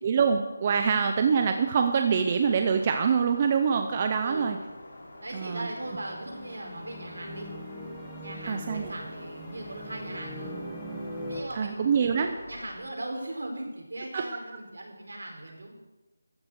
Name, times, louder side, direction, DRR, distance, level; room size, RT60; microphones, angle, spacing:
voice 1, 0.0-4.6 5.3-5.7 8.4-8.9 11.5-12.3 14.1-14.2, right 6 dB, 20° right, 6 dB, 0.6 m, -25 dB
sound 1, 2.4-12.8, left 1 dB, 55° left, 3.8 m, -48 dB
voice 2, 4.2-4.6 5.2-7.5 8.2-10.6 11.3-15.7, right 1 dB, 75° right, 1 dB, 4.5 m, -39 dB
sound 2, 5.0-11.4, equal, 5° left, 1.3 m, -41 dB
14.0 x 8.6 x 6.6 m, 1.1 s
figure-of-eight pair, 180°, 0 cm